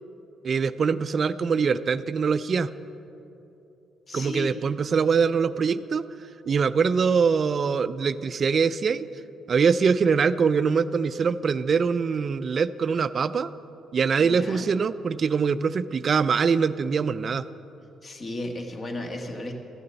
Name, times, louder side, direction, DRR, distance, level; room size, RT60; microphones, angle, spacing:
voice 1, 0.4-2.7 4.1-6.1 6.5-9.1 9.5-13.5 13.9-17.5, right 5 dB, 45° right, 14 dB, 0.4 m, -23 dB
voice 2, 4.1-4.5 14.2-14.7 18.0-19.5, left 1 dB, 40° left, 3 dB, 1.6 m, -34 dB
14.0 x 6.8 x 7.8 m, 2.9 s
cardioid pair, 90°, 0 cm